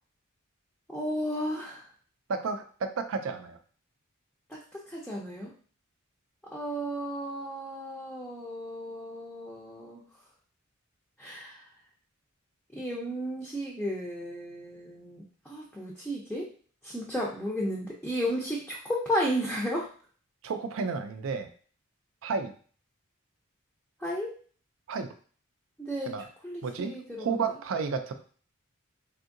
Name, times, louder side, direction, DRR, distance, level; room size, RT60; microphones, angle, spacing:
voice 1, 0.9-1.9 4.5-5.5 6.5-10.0 11.2-11.6 12.7-16.5 16.8-19.9 24.0-24.3 25.8-26.1 26.4-27.4, equal, 5° left, -4 dB, 0.5 m, -33 dB
voice 2, 2.3-3.6 20.4-21.5 22.2-22.5 24.9-25.1 26.1-26.2 26.6-28.1, right 5 dB, 70° right, 8 dB, 0.4 m, -32 dB
3.5 x 2.7 x 2.6 m, 0.43 s
head